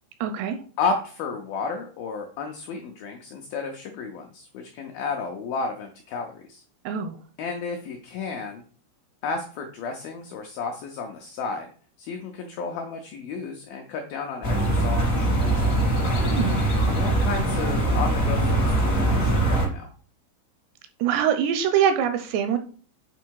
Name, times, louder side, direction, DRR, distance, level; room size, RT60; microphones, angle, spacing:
voice 1, 0.2-0.6 6.9-7.2 16.2-16.6 21.0-22.6, right 8 dB, 85° right, 8 dB, 2.5 m, -23 dB
voice 2, 0.8-6.6 7.4-8.6 9.2-11.7 12.0-15.7 16.8-19.9, left 4 dB, 80° left, 3 dB, 2.1 m, -32 dB
sound 1, 14.4-19.7, right 1 dB, 50° left, 0.8 m, -22 dB
8.2 x 4.4 x 4.7 m, 0.43 s
omnidirectional pair, 5.2 m